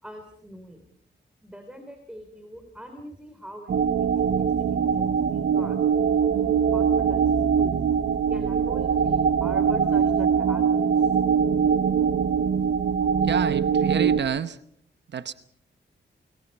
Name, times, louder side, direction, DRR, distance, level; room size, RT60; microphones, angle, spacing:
voice 1, 0.0-0.8 1.4-5.8 6.3-7.8 8.3-11.1, equal, 5° right, 5 dB, 3.3 m, -42 dB
sound 1, 3.7-14.2, right 7 dB, 90° right, 1.3 m, -22 dB
voice 2, 13.2-14.6 15.1-15.3, right 8 dB, 65° right, 12 dB, 0.9 m, -28 dB
29.5 x 22.0 x 5.4 m, 0.67 s
wide cardioid pair, 160°, 19 cm